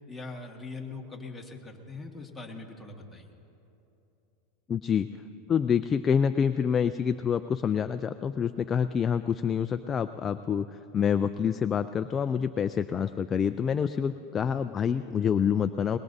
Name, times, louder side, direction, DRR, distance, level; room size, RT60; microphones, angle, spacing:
voice 1, 0.1-3.3 14.4-14.5, left 3 dB, 5° left, -1 dB, 1.7 m, -42 dB
voice 2, 4.7-5.1 5.5-16.0, left 7 dB, 25° left, 10 dB, 0.3 m, -27 dB
21.5 x 21.5 x 2.7 m, 2.9 s
supercardioid pair, 135°, 0 cm